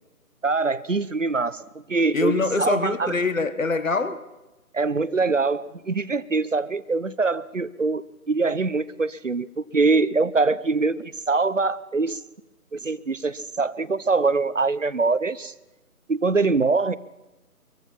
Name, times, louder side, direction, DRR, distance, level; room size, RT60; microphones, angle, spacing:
voice 1, 0.4-1.6 1.9-3.1 4.7-12.2 12.7-15.5 16.1-16.9, right 3 dB, 55° right, 0.9 m, -23 dB
voice 2, 2.1-4.2, left 3 dB, 55° left, 1.5 m, -24 dB
24.5 x 22.5 x 5.8 m
figure-of-eight pair, 160°, 46 cm